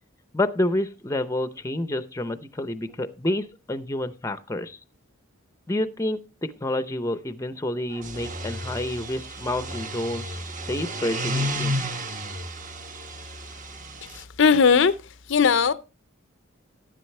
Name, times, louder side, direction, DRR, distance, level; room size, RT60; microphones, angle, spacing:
voice 1, 0.3-4.8 5.7-10.4 10.7-11.9, left 1 dB, 15° left, 0.6 m, -29 dB
sound 1, 7.9-14.2, equal, 40° right, 1.2 m, -32 dB
voice 2, 14.1-15.7, left 6 dB, 60° left, 0.5 m, -19 dB
11.5 x 10.0 x 3.2 m
head